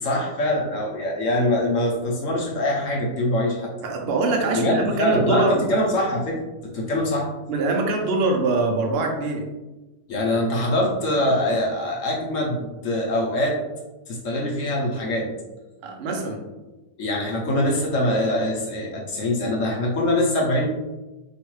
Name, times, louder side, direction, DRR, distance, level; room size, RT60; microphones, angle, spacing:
voice 1, 0.0-3.7 4.5-7.3 10.1-13.6 14.1-15.3 17.0-20.7, left 1 dB, 55° left, -2 dB, 1.0 m, -23 dB
voice 2, 3.8-5.6 7.5-9.4 15.8-16.5, right 3 dB, 65° right, 2 dB, 0.6 m, -23 dB
4.8 x 3.0 x 3.1 m, 1.1 s
omnidirectional pair, 1.9 m